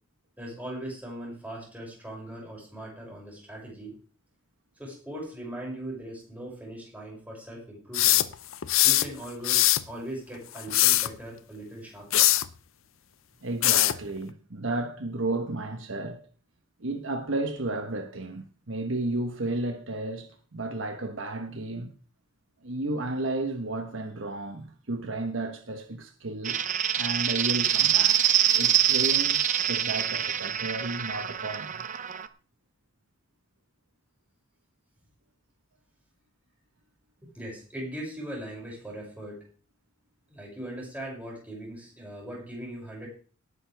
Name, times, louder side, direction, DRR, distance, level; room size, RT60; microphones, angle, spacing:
voice 1, 0.4-3.9 4.8-8.2 8.8-12.3 37.3-39.4 40.3-43.1, right 1 dB, 10° right, 6.7 m, -39 dB
sound 1, 7.9-9.1 9.4-9.9 10.6-11.1 12.1-12.5 13.6-14.0, left 14 dB, 70° left, 0.7 m, -21 dB
voice 2, 13.4-16.2 16.8-21.9 22.6-26.6 27.0-28.2 28.5-31.8, right 2 dB, 65° right, 1.3 m, -33 dB
sound 2, 26.4-32.3, right 9 dB, 40° right, 0.7 m, -25 dB
18.0 x 9.8 x 3.5 m
head